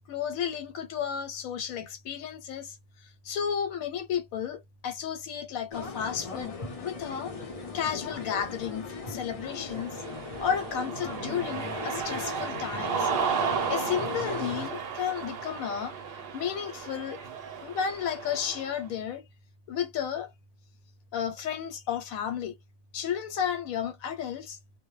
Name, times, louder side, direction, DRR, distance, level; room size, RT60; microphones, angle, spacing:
voice 1, 0.1-2.8 3.2-6.5 6.8-7.3 7.7-10.0 10.4-13.1 13.7-15.9 16.3-17.2 17.6-19.2 19.7-20.3 21.1-22.5 22.9-24.6, left 8 dB, 90° left, 1.1 m, -32 dB
sound 1, 5.7-14.7, left 4 dB, 40° left, 0.5 m, -38 dB
Cheering, 9.5-18.8, right 6 dB, 55° right, 0.7 m, -34 dB
2.2 x 2.1 x 3.0 m
omnidirectional pair, 1.4 m